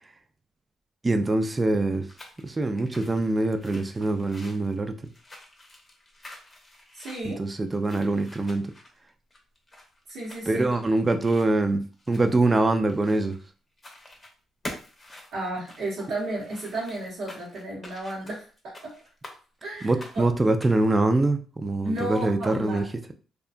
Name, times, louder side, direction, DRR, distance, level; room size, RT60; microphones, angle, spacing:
voice 1, 1.0-2.1 2.4-5.0 7.2-8.7 10.5-13.4 19.8-22.9, right 2 dB, 25° right, 0.3 m, -24 dB
sound 1, 1.9-13.5 13.8-14.3 14.6-19.4 19.8-20.9, left 1 dB, 25° left, 0.7 m, -46 dB
voice 2, 6.9-7.4 10.1-10.8 15.3-18.5 18.8-18.9 19.6-20.2 21.8-22.9, right 1 dB, 75° right, 0.9 m, -33 dB
2.7 x 2.2 x 2.4 m
cardioid pair, 90°, 0 cm